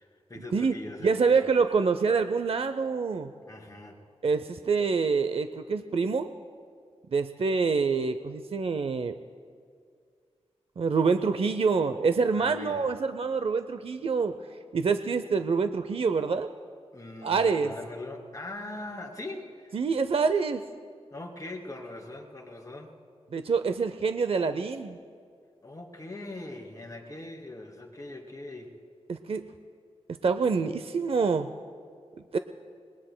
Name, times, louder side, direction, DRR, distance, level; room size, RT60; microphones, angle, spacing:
voice 1, 0.0-1.5 3.5-4.0 12.3-12.9 16.9-19.8 21.1-22.9 25.6-28.8, left 2 dB, 30° left, 0 dB, 2.7 m, -41 dB
voice 2, 1.0-3.3 4.2-6.3 7.1-9.1 10.8-14.3 14.7-16.5 17.2-17.7 19.7-20.6 23.3-25.0 29.1-29.5 30.2-31.5 32.3-32.4, right 5 dB, 60° right, 10 dB, 0.5 m, -26 dB
26.5 x 21.5 x 2.2 m, 2.1 s
wide cardioid pair, 65°, 11 cm